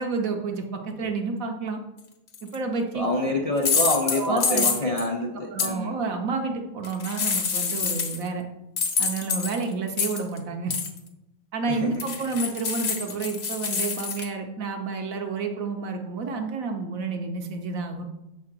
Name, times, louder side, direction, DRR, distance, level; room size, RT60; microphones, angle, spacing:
voice 1, 0.0-1.8 2.4-3.0 4.1-4.9 5.5-8.4 9.0-10.7 11.5-18.0, right 4 dB, 60° right, 4 dB, 1.0 m, -30 dB
sound 1, 2.3-2.6 3.6-5.1 5.6-5.7 6.8-8.3 8.8-10.4 10.7-11.0 12.0-14.2, left 6 dB, 50° left, 0.8 m, -26 dB
voice 2, 2.9-5.9 11.7-12.0, left 1 dB, 70° left, -1 dB, 0.3 m, -27 dB
7.3 x 3.8 x 5.9 m, 0.94 s
omnidirectional pair, 1.9 m